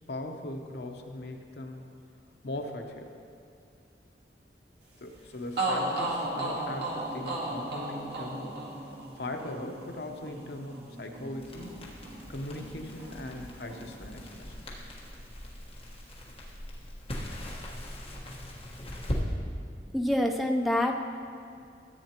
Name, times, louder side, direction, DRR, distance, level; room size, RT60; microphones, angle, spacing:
voice 1, 0.1-1.8 2.4-3.1 5.0-8.6 9.2-11.9 12.3-14.5, left 1 dB, 65° left, 3 dB, 0.8 m, -39 dB
sound 1, 5.2-5.3 5.6-13.4 13.7-14.8, right 2 dB, 60° right, 1.7 m, -35 dB
Crackle, 11.4-19.2, left 1 dB, 30° left, 1.3 m, -40 dB
voice 2, 19.9-21.0, left 1 dB, ahead, 2 dB, 0.5 m, -26 dB
14.0 x 8.3 x 2.9 m, 2.4 s
head